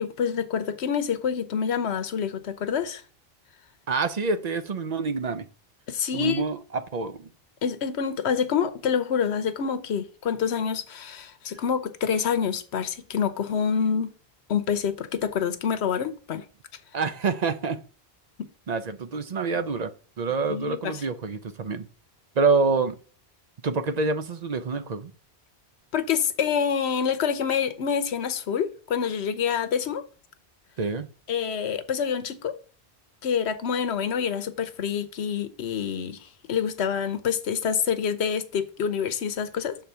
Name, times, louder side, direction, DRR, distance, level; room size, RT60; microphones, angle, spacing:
voice 1, 0.0-3.0 5.9-6.4 7.6-14.1 14.5-16.4 18.4-18.5 20.5-21.0 25.9-30.0 31.3-32.6 33.2-39.8, left 7 dB, 90° left, 1.1 m, -27 dB
voice 2, 3.9-5.5 6.1-7.3 16.9-17.8 18.7-19.9 20.2-21.9 22.4-23.0 23.6-25.1 30.8-31.1, right 4 dB, 45° right, 0.7 m, -26 dB
6.7 x 4.0 x 5.5 m
omnidirectional pair, 1.1 m